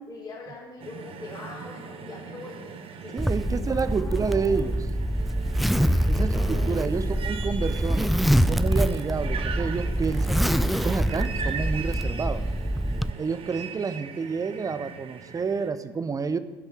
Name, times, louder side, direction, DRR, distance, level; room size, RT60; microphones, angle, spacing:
voice 1, 0.0-4.7 6.1-7.1, left 3 dB, 30° left, -3 dB, 4.0 m, -42 dB
sound 1, 0.8-15.7, right 6 dB, 45° right, 1.3 m, -39 dB
voice 2, 3.1-4.9 6.1-8.1 8.5-10.4 10.6-12.5 13.2-16.4, right 5 dB, 25° right, 14 dB, 0.8 m, -29 dB
Zipper (clothing), 3.2-13.1, equal, ahead, 0.4 m, -25 dB
16.0 x 6.4 x 6.1 m, 1.4 s
hypercardioid pair, 75°, 14 cm